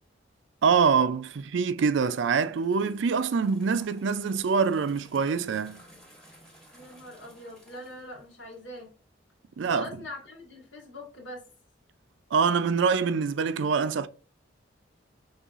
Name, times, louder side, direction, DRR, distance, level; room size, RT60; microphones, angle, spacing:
voice 1, 0.6-5.8 9.6-9.9 12.3-14.1, right 5 dB, 75° right, 0.4 m, -25 dB
sound 1, 1.8-8.9, equal, 5° left, 1.2 m, -55 dB
voice 2, 6.7-8.9 9.6-11.4, left 1 dB, 75° left, 1.7 m, -42 dB
5.4 x 3.3 x 2.5 m
head